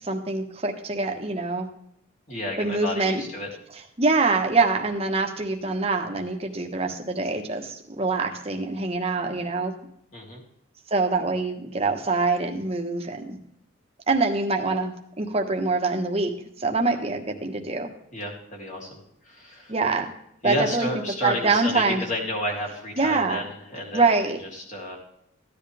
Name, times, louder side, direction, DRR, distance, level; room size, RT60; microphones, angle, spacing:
voice 1, 0.0-1.7 2.6-3.2 4.0-9.7 10.9-13.4 14.1-16.3 16.6-17.9 19.7-20.1 20.4-20.9 21.2-22.0 23.0-23.4 23.9-24.4, right 3 dB, 30° right, 3 dB, 1.3 m, -24 dB
voice 2, 2.3-3.5 10.1-10.4 18.1-19.0 19.2-19.7 20.4-25.0, left 1 dB, 35° left, -2 dB, 3.3 m, -31 dB
15.0 x 10.0 x 3.4 m, 0.73 s
head